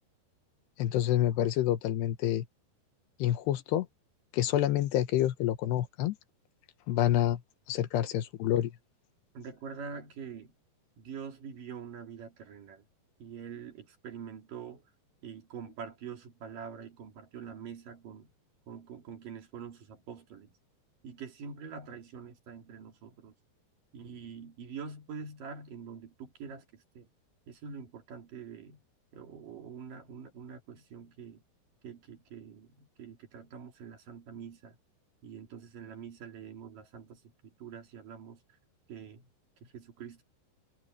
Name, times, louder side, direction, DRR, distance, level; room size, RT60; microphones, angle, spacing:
voice 1, 0.8-2.4 3.2-3.9 4.3-6.2 6.9-7.4 7.7-8.7, left 12 dB, 80° left, 3.1 m, -28 dB
voice 2, 9.3-10.5 11.0-12.8 13.2-14.8 15.2-18.3 18.7-20.6 21.0-23.3 23.9-27.1 27.5-28.8 29.1-31.4 31.8-34.8 35.2-38.6 38.9-39.3 39.6-40.2, right 6 dB, 55° right, 3.9 m, -45 dB
omnidirectional pair, 5.0 m